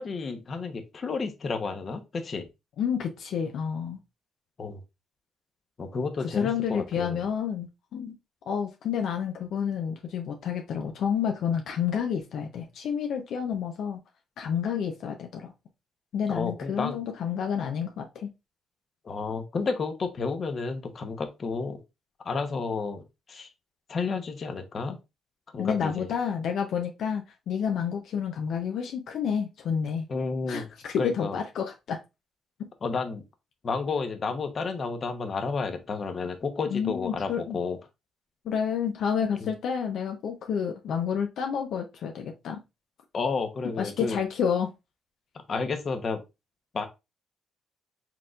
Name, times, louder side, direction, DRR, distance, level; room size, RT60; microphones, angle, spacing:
voice 1, 0.0-2.5 4.6-4.8 5.8-7.2 16.3-17.0 19.0-21.8 22.2-23.5 23.9-25.0 25.5-26.1 30.1-30.7 31.0-31.4 32.8-33.2 33.6-37.8 39.4-39.5 43.1-44.2 45.5-46.2 46.7-46.8, left 4 dB, 45° left, 0.9 m, -31 dB
voice 2, 2.8-4.0 6.2-8.2 8.5-14.0 14.4-15.5 16.1-18.3 25.6-30.1 30.5-32.0 32.6-32.7 36.7-37.6 38.4-42.6 43.8-44.7, left 7 dB, 75° left, 0.6 m, -29 dB
4.5 x 3.7 x 2.4 m
cardioid pair, 90°, 0 cm